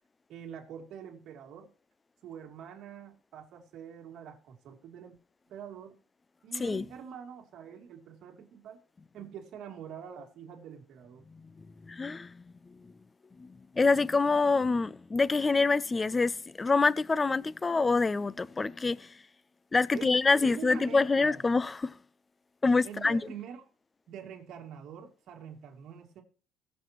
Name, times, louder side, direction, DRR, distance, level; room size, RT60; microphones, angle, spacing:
voice 1, 0.3-1.7 2.2-5.2 5.5-6.0 6.4-8.8 9.1-11.2 19.9-21.4 22.8-23.6 24.1-26.2, right 8 dB, 60° right, 2.8 m, -45 dB
voice 2, 11.9-12.4 13.4-19.1 19.7-21.9 22.6-23.2, left 3 dB, 20° left, 0.4 m, -26 dB
21.0 x 7.3 x 3.0 m
cardioid pair, 140°, 0 cm